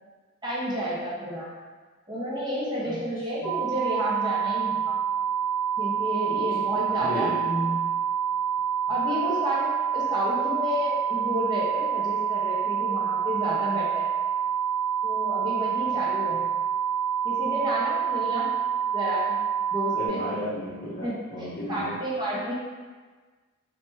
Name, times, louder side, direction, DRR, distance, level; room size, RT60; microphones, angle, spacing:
voice 1, 0.4-1.5 2.1-5.0 5.8-7.3 8.9-9.7 9.9-14.1 15.0-16.4 17.2-18.5 18.9-19.3 19.7-20.2 21.0-22.5, equal, 20° right, -6 dB, 0.5 m, -30 dB
sound 1, 3.4-20.1, right 8 dB, 45° right, 1.2 m, -27 dB
voice 2, 6.9-7.9 16.3-16.4 19.9-22.0, equal, 40° left, -7 dB, 0.7 m, -33 dB
3.1 x 2.1 x 3.1 m, 1.4 s
head